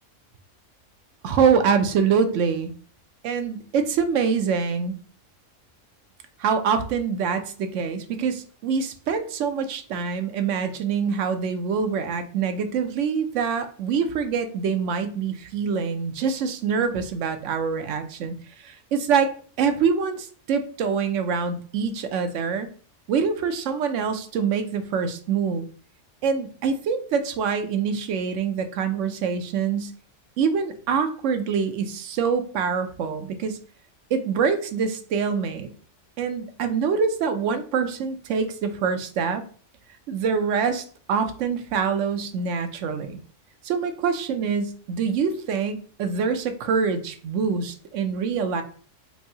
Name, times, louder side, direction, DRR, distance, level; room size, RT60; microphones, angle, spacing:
voice 1, 1.2-2.7 3.2-5.0 6.4-19.3 19.6-22.7 23.1-25.7 26.2-29.9 30.4-33.6 34.1-35.7 36.2-39.4 40.1-43.2 43.6-48.6, right 6 dB, 80° right, 8 dB, 0.9 m, -25 dB
4.5 x 2.6 x 2.7 m, 0.43 s
omnidirectional pair, 1.3 m